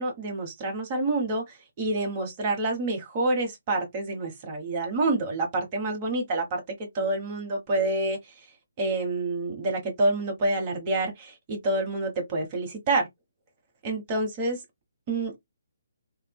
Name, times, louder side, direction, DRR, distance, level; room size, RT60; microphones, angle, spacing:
voice 1, 0.0-8.2 8.8-13.1 13.8-14.6 15.1-15.4, right 2 dB, 30° right, 1.1 m, -28 dB
3.0 x 2.0 x 2.2 m
figure-of-eight pair, 140°, 0 cm